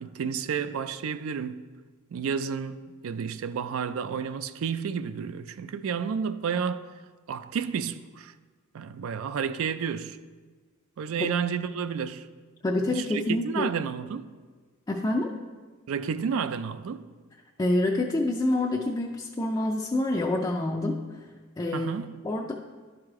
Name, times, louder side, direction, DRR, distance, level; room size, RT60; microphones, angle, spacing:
voice 1, 0.0-1.6 2.1-6.8 7.3-8.3 8.7-10.2 11.0-12.3 12.8-14.3 15.9-17.0 21.7-22.1, right 6 dB, 65° right, 0.4 m, -31 dB
voice 2, 12.6-13.7 14.9-15.4 17.6-21.3 21.6-22.0 22.2-22.5, left 1 dB, 20° left, 0.4 m, -27 dB
11.5 x 4.9 x 3.6 m
head